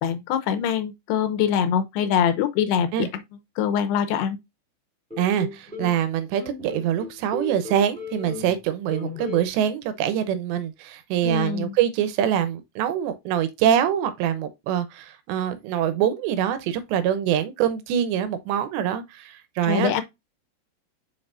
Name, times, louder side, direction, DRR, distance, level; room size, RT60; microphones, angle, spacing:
voice 1, 0.0-3.1 3.6-4.4 11.2-11.7 19.6-20.0, left 8 dB, 80° left, 2.8 m, -23 dB
sound 1, 5.1-6.0 6.4-8.6 8.9-9.4, left 3 dB, 5° left, 1.9 m, -35 dB
voice 2, 5.2-19.9, right 10 dB, 90° right, 3.2 m, -24 dB
6.6 x 5.5 x 2.6 m
omnidirectional pair, 4.9 m